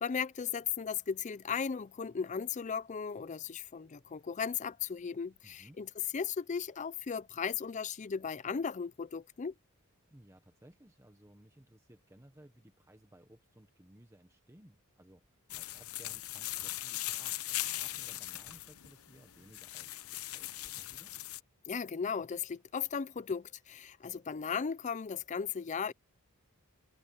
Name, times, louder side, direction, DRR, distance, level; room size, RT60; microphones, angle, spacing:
voice 1, 0.0-9.5 21.7-25.9, left 6 dB, 35° left, 0.4 m, -36 dB
voice 2, 5.4-5.8 10.1-21.1, right 1 dB, 15° right, 1.2 m, -60 dB
sound 1, 15.5-21.4, left 15 dB, 70° left, 1.0 m, -39 dB
head